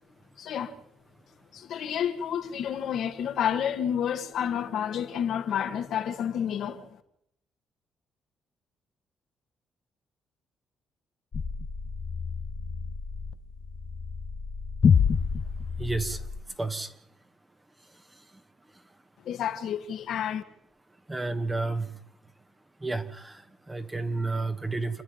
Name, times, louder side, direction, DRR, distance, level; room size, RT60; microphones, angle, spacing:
voice 1, 0.4-0.7 1.5-6.9 19.3-20.4, left 9 dB, 70° left, 2.2 m, -30 dB
sound 1, 11.3-16.4, left 6 dB, 50° left, 1.2 m, -28 dB
voice 2, 15.8-16.3 16.6-17.0 18.1-18.2 21.1-22.0 22.8-25.0, right 3 dB, 15° right, 1.9 m, -31 dB
29.0 x 10.0 x 10.0 m
cardioid pair, 90°, 0 cm